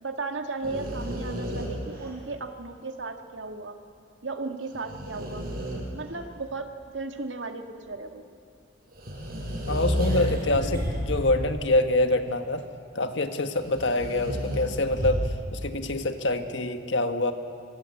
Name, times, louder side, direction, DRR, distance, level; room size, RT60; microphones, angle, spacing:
voice 1, 0.0-3.8 4.2-5.5 5.9-6.7 6.9-8.2, right 3 dB, 70° right, 6 dB, 1.9 m, -35 dB
sound 1, 0.6-2.3 4.6-6.1 8.9-11.7 12.2-12.3 13.5-15.5, equal, 50° right, 7.0 m, -31 dB
voice 2, 9.7-12.6 12.9-17.3, left 2 dB, 65° left, 7 dB, 1.6 m, -26 dB
25.5 x 24.5 x 8.5 m, 2.3 s
head